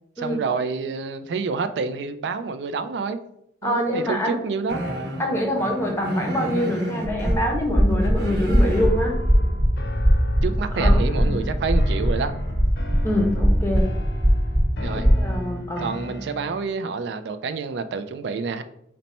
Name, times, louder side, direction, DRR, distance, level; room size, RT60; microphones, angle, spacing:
voice 1, 0.2-3.2 3.6-4.8 10.4-12.3 14.8-15.1 15.8-18.6, right 5 dB, 85° right, 0.3 m, -28 dB
voice 2, 3.6-4.4 5.2-9.2 10.7-11.4 13.0-13.9 15.2-15.9, left 1 dB, 15° left, 0.6 m, -25 dB
sound 1, 4.7-7.4 7.9-8.9 11.7-11.8 12.4-12.7, right 1 dB, 65° right, 0.9 m, -31 dB
sound 2, 7.0-15.2, equal, 25° right, 0.8 m, -21 dB
sound 3, 8.8-16.8, left 1 dB, 80° left, 0.6 m, -34 dB
4.1 x 2.1 x 4.1 m
head